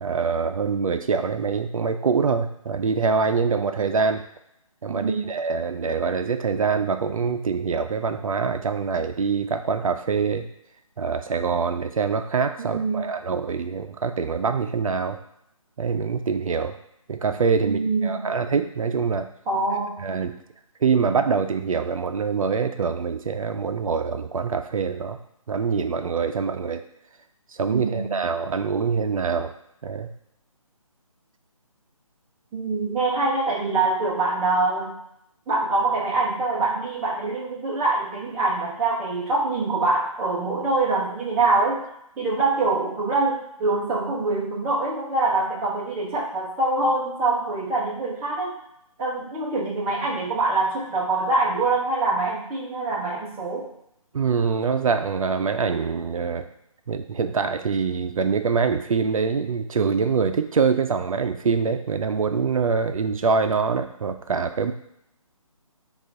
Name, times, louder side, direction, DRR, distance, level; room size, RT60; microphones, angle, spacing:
voice 1, 0.0-4.2 4.8-10.4 11.0-15.2 15.8-16.8 17.1-19.3 20.0-20.4 20.8-25.2 25.5-26.8 27.5-29.5 29.8-30.1 54.1-56.5 56.9-64.7, right 5 dB, 70° right, 8 dB, 0.5 m, -24 dB
voice 2, 4.9-5.3 12.6-13.1 17.6-18.3 19.5-20.0 27.7-28.2 32.5-34.9 35.5-41.8 42.2-48.5 49.0-53.7, right 3 dB, 10° right, -6 dB, 0.6 m, -24 dB
5.5 x 2.4 x 3.7 m, 0.77 s
figure-of-eight pair, 160°, 18 cm